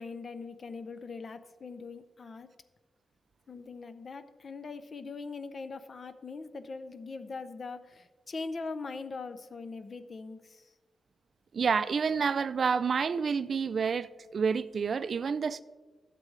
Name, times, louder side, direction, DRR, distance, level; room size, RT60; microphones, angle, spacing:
voice 1, 0.0-2.5 3.5-10.7, left 4 dB, 50° left, 0.6 m, -41 dB
voice 2, 11.5-15.6, right 6 dB, 60° right, 0.3 m, -29 dB
12.0 x 7.5 x 3.2 m
cardioid pair, 85°, 0 cm